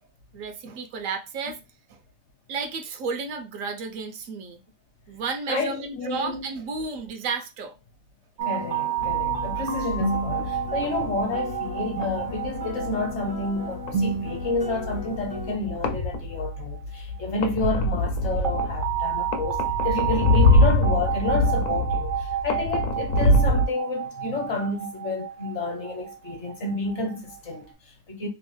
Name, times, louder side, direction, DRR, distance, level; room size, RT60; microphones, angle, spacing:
voice 1, 0.3-1.6 1.9-2.0 2.5-4.6 5.1-7.7, right 4 dB, 75° right, 1.0 m, -32 dB
voice 2, 5.5-6.5 8.4-28.3, left 3 dB, 60° left, 1.1 m, -30 dB
sound 1, 8.4-15.5, right 1 dB, 25° left, 0.5 m, -34 dB
sound 2, 8.4-17.2 18.4-27.6, right 11 dB, 60° right, 0.5 m, -32 dB
sound 3, 9.0-23.7, left 1 dB, 80° left, 1.0 m, -25 dB
3.0 x 2.4 x 3.0 m
omnidirectional pair, 1.4 m